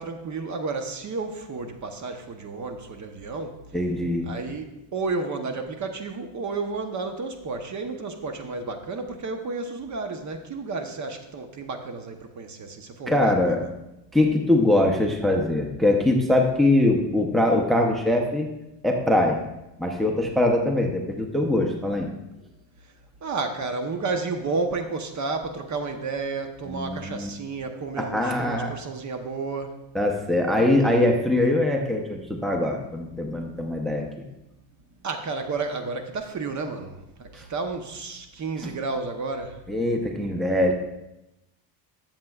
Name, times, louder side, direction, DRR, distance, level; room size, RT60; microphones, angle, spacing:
voice 1, 0.0-3.6 4.3-4.6 4.9-13.6 23.2-29.7 35.0-39.6, right 3 dB, 35° right, 6 dB, 1.0 m, -31 dB
voice 2, 3.7-4.3 13.1-13.6 14.1-18.5 18.8-19.4 19.8-22.1 26.6-27.3 28.0-28.7 29.9-34.0 37.3-37.4 38.6-38.7 39.7-40.7, left 1 dB, ahead, 2 dB, 0.7 m, -22 dB
13.0 x 7.3 x 2.4 m, 0.93 s
supercardioid pair, 110°, 48 cm